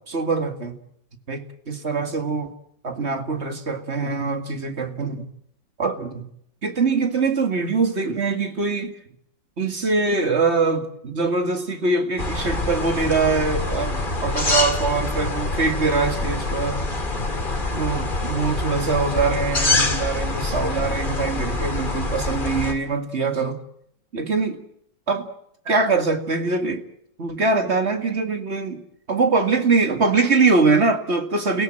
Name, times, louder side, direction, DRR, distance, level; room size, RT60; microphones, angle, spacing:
voice 1, 0.1-0.8 1.3-2.5 2.8-5.3 5.8-6.3 6.6-8.9 9.6-16.8 17.8-23.6 24.1-24.6 25.1-25.3 25.7-26.8 27.2-28.8 29.1-31.6, right 4 dB, 35° right, 6 dB, 2.2 m, -23 dB
sound 1, 12.2-22.7, left 2 dB, 30° left, 2.3 m, -25 dB
30.0 x 17.0 x 7.5 m, 0.73 s
omnidirectional pair, 1.9 m